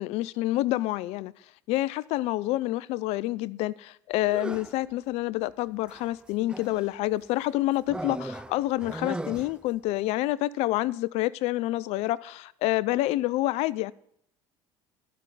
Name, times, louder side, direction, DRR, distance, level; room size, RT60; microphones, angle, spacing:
voice 1, 0.0-1.3 1.7-13.9, left 17 dB, 65° left, 0.5 m, -28 dB
sound 1, 4.2-4.8 5.9-6.9 7.9-9.7, right 2 dB, 10° right, 0.4 m, -37 dB
11.0 x 5.3 x 7.5 m
hypercardioid pair, 75°, 11 cm